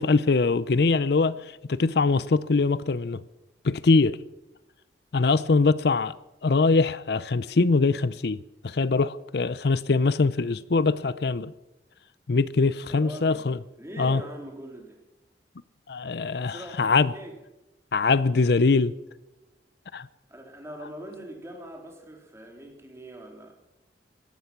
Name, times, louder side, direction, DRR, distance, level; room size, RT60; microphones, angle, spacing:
voice 1, 0.0-1.4 1.7-3.2 3.6-4.2 5.1-6.1 6.4-8.4 8.6-11.5 12.3-13.6 14.0-14.2 15.9-17.1 17.9-18.9 19.9-20.1, left 4 dB, 65° left, 0.6 m, -22 dB
voice 2, 12.9-13.5 13.8-15.0 16.4-17.4 20.3-23.5, right 1 dB, 15° right, 3.4 m, -42 dB
17.5 x 12.5 x 5.9 m
head